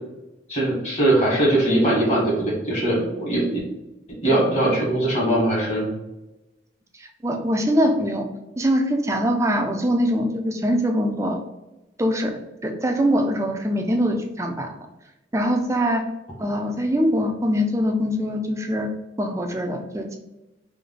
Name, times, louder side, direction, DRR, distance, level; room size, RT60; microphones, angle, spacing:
voice 1, 0.5-3.6 4.2-5.9, right 1 dB, 35° left, -4 dB, 1.5 m, -21 dB
voice 2, 7.0-8.3 8.6-11.4 12.0-14.7 15.3-16.1 16.4-18.9 19.2-20.2, equal, 15° right, 4 dB, 0.4 m, -23 dB
3.2 x 2.2 x 3.7 m, 0.98 s
head